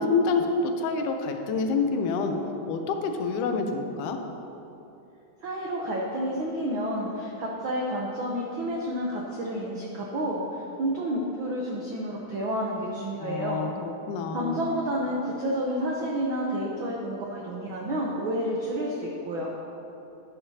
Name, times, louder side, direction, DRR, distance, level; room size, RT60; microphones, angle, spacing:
voice 1, 0.0-2.4 2.7-4.2 13.2-14.6, left 4 dB, 85° left, 5 dB, 2.3 m, -27 dB
voice 2, 5.4-13.6 14.3-19.5, equal, 85° right, -2 dB, 1.1 m, -30 dB
11.0 x 10.5 x 2.8 m, 2.9 s
omnidirectional pair, 3.5 m